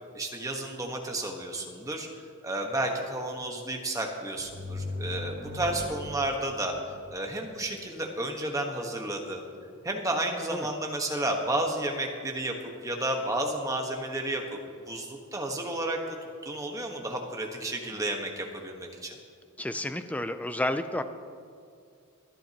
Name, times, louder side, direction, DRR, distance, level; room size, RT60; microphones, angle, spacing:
voice 1, 0.1-2.1 2.4-6.7 7.1-9.4 9.8-12.5 12.8-14.6 14.9-19.2, right 1 dB, 15° right, 2 dB, 1.3 m, -32 dB
sound 1, 4.4-7.9, left 2 dB, 50° right, 3.0 m, -39 dB
voice 2, 19.6-21.0, left 1 dB, 5° left, 9 dB, 0.4 m, -31 dB
25.0 x 10.0 x 2.9 m, 2.4 s
head